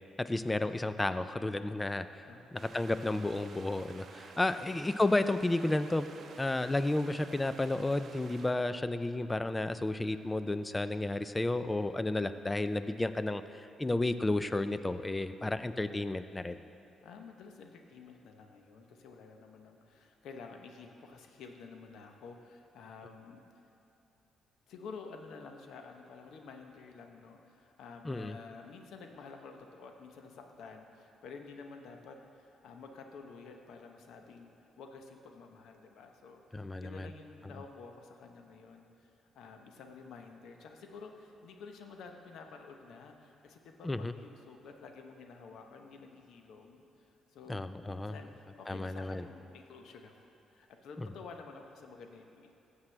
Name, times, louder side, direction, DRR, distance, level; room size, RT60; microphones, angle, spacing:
voice 1, 0.2-2.3 2.5-6.1 6.4-16.6 28.0-28.3 36.5-37.1 43.8-44.1 47.5-48.1 48.7-49.3, left 2 dB, 15° left, 12 dB, 0.4 m, -32 dB
voice 2, 2.2-2.6 4.6-4.8 17.0-23.4 24.7-46.8 47.3-50.2 50.5-52.5, left 4 dB, 75° left, 4 dB, 0.8 m, -50 dB
sound 1, 2.6-8.5, right 4 dB, 55° right, 0.7 m, -52 dB
14.5 x 7.4 x 3.3 m, 2.9 s
cardioid pair, 90°, 0 cm